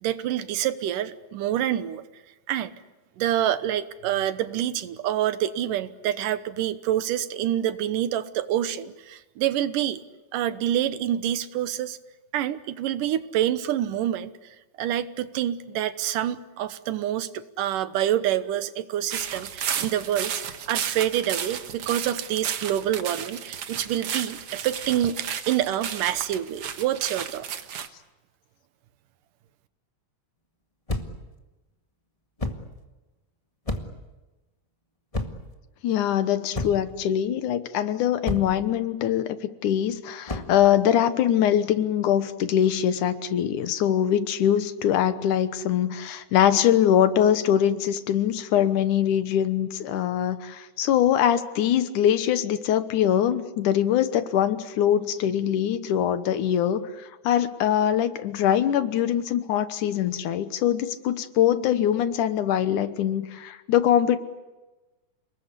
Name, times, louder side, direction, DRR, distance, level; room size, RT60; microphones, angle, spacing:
voice 1, 0.0-2.0 2.5-2.7 3.2-10.0 10.3-12.0 12.3-14.3 14.8-20.3 20.7-27.5, right 11 dB, 80° right, 13 dB, 2.6 m, -27 dB
sound 1, 19.1-27.9, right 8 dB, 55° right, 1.9 m, -33 dB
sound 2, 30.9-31.3 32.4-32.7 33.7-34.1 35.1-35.5 36.5-37.0 38.3-38.6 40.3-40.6, left 2 dB, 15° left, 1.1 m, -31 dB
voice 2, 35.8-39.4 39.6-64.2, left 10 dB, 75° left, 11 dB, 2.5 m, -23 dB
29.5 x 20.5 x 8.3 m, 1.1 s
omnidirectional pair, 3.7 m